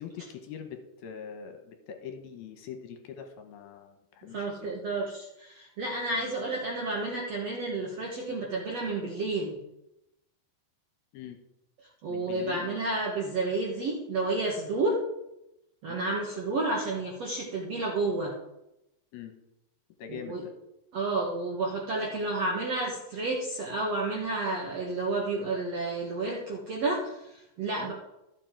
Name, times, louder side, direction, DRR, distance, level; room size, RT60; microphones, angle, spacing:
voice 1, 0.0-4.7 6.2-6.3 11.1-11.4 12.1-12.7 15.9-16.0 19.1-19.3 20.0-20.5 27.8-27.9, left 8 dB, 75° left, 5 dB, 2.7 m, -43 dB
voice 2, 4.3-9.6 12.0-15.0 15.8-18.3 20.1-20.4 20.9-27.9, right 2 dB, 60° right, -2 dB, 1.8 m, -31 dB
13.5 x 7.2 x 4.5 m, 0.88 s
omnidirectional pair, 4.7 m